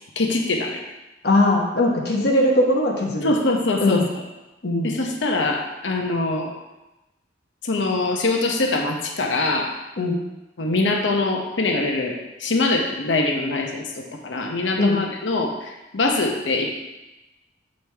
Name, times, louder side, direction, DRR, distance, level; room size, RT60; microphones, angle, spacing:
voice 1, 0.2-0.8 3.2-4.2 4.8-6.5 7.6-9.7 10.6-13.9 14.2-16.7, left 2 dB, 75° left, 1 dB, 0.9 m, -23 dB
voice 2, 1.2-3.3 3.8-4.0 4.6-5.0 10.0-10.2 14.8-15.0, left 1 dB, 55° left, -1 dB, 1.2 m, -20 dB
7.9 x 5.2 x 3.5 m, 1.0 s
head